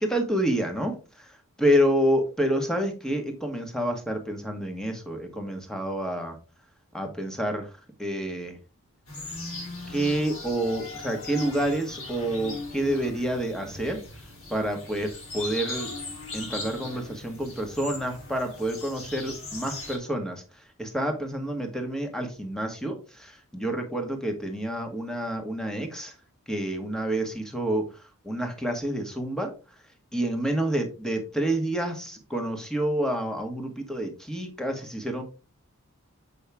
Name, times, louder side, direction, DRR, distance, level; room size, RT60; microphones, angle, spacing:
voice 1, 0.0-6.4 6.9-7.7 8.0-8.6 9.9-14.0 14.5-15.9 16.3-26.1 26.5-29.5 30.1-35.2, right 1 dB, 5° left, 4 dB, 1.2 m, -28 dB
sound 1, 9.1-20.0, left 2 dB, 70° left, 3.6 m, -39 dB
7.1 x 5.4 x 3.4 m, 0.33 s
head